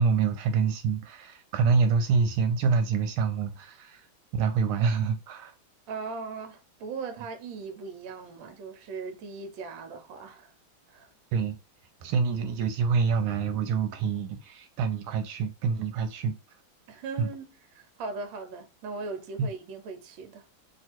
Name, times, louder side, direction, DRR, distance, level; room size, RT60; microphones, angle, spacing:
voice 1, 0.0-4.1 4.3-5.5 11.3-11.6 12.0-16.4 17.2-17.3 19.4-19.5, right 5 dB, 85° right, 1.4 m, -26 dB
voice 2, 5.9-10.5 10.9-11.1 16.9-17.4 17.7-20.4, right 4 dB, 70° right, 1.5 m, -39 dB
3.0 x 2.9 x 4.3 m
omnidirectional pair, 2.3 m